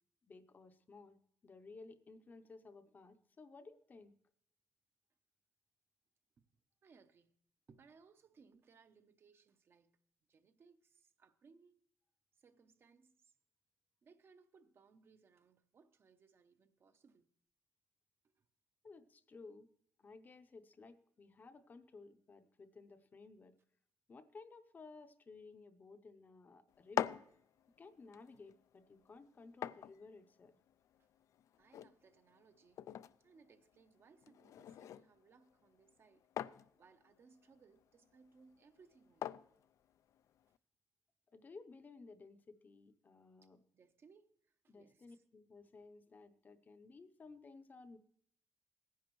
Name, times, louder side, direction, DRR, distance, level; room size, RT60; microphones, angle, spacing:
voice 1, 0.2-4.1 18.8-19.7 20.0-23.6 24.1-27.2 27.8-30.6 41.3-43.6 44.7-48.0, left 3 dB, 35° left, 0.7 m, -57 dB
voice 2, 6.8-7.4 7.7-10.0 10.3-11.8 12.3-13.3 14.0-17.3 18.4-18.5 31.0-31.1 31.6-32.8 33.2-36.3 36.8-39.3 43.4-45.2, right 5 dB, 45° right, 0.7 m, -66 dB
sound 1, 26.7-40.6, left 10 dB, 70° left, 0.4 m, -47 dB
18.0 x 10.0 x 3.1 m
cardioid pair, 120°, 5 cm